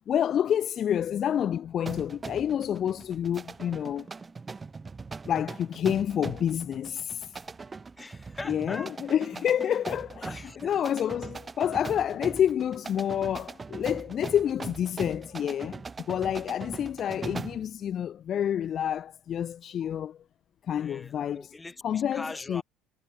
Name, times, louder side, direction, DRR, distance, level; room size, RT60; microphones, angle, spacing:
voice 1, 0.1-4.1 5.2-7.4 8.5-10.3 10.6-15.8 16.1-20.2 20.7-21.5 21.8-22.6, left 9 dB, 35° left, 0.5 m, -28 dB
sound 1, 1.9-17.7, right 4 dB, 15° right, 0.7 m, -41 dB
voice 2, 8.0-9.0 10.1-10.9 16.5-16.6 20.7-22.6, left 3 dB, 10° left, 2.2 m, -42 dB
cardioid pair, 160°, 0 cm